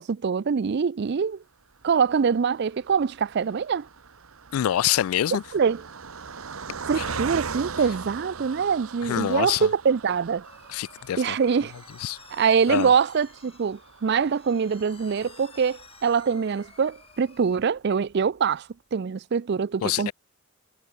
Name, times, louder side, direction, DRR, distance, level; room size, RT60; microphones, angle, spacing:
voice 1, 0.0-1.4 1.8-3.9 5.3-5.8 6.9-10.4 11.2-11.7 12.3-18.6 18.9-20.1, right 6 dB, 55° right, 0.4 m, -24 dB
Car passing by, 1.8-17.2 17.8-17.9 18.1-18.3, right 5 dB, 85° right, 1.1 m, -40 dB
voice 2, 4.5-5.4 7.0-7.2 9.0-9.7 10.7-11.4 12.0-12.2 12.7-12.9 19.8-20.1, left 11 dB, 85° left, 0.3 m, -26 dB
sound 1, 10.4-17.6, left 6 dB, 25° left, 5.8 m, -53 dB
head